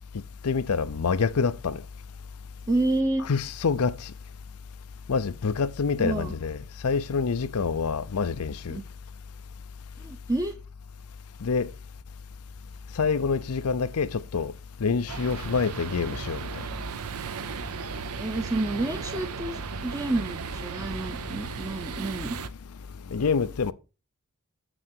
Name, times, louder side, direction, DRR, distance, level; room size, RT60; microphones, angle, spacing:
voice 1, 0.4-1.8 3.3-4.1 5.1-8.8 11.4-11.7 12.9-14.5 14.8-16.6 23.1-23.7, left 5 dB, 80° left, 0.6 m, -26 dB
voice 2, 2.7-3.3 6.0-6.3 8.7-8.8 10.0-10.6 18.2-22.4, right 2 dB, 15° right, 0.6 m, -29 dB
sound 1, 15.1-22.5, right 5 dB, 80° right, 0.7 m, -36 dB
7.6 x 6.3 x 4.4 m
head